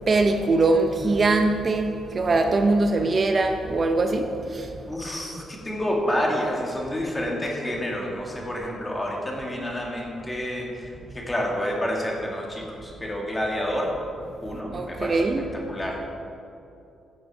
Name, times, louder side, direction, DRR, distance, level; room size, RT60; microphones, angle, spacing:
voice 1, 0.1-4.7 14.7-15.5, right 3 dB, 35° right, 5 dB, 0.7 m, -22 dB
voice 2, 4.9-13.9 14.4-15.3 15.7-16.0, equal, 15° left, -1 dB, 2.3 m, -29 dB
14.5 x 7.8 x 4.9 m, 2.7 s
cardioid pair, 105°, 0 cm